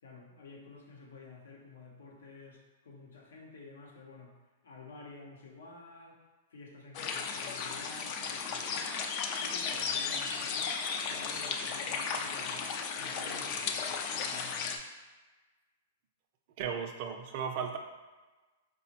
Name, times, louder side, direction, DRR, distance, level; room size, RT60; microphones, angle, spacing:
voice 1, 0.0-4.3 4.6-6.2 6.5-8.9 9.4-14.8, left 3 dB, 85° left, 0 dB, 0.7 m, -51 dB
sound 1, 6.9-14.8, left 5 dB, 40° left, 0.3 m, -35 dB
voice 2, 16.6-17.8, right 7 dB, 45° right, 4 dB, 0.4 m, -35 dB
4.0 x 2.0 x 2.9 m, 1.2 s
hypercardioid pair, 140°, 0 cm